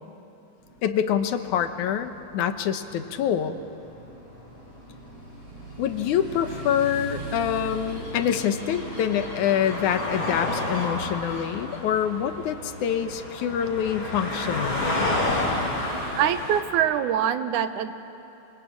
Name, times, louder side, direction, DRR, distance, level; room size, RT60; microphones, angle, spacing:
Motorcycle, 0.6-16.3, right 2 dB, 60° right, 8.8 m, -42 dB
voice 1, 0.8-3.6 5.8-14.8, left 9 dB, 90° left, 9 dB, 2.5 m, -26 dB
sound 1, 4.3-4.4 6.7-16.6, left 2 dB, 40° left, 4.6 m, -31 dB
voice 2, 16.1-17.9, right 9 dB, 85° right, 10 dB, 2.5 m, -24 dB
27.5 x 25.0 x 8.7 m, 2.9 s
omnidirectional pair, 3.4 m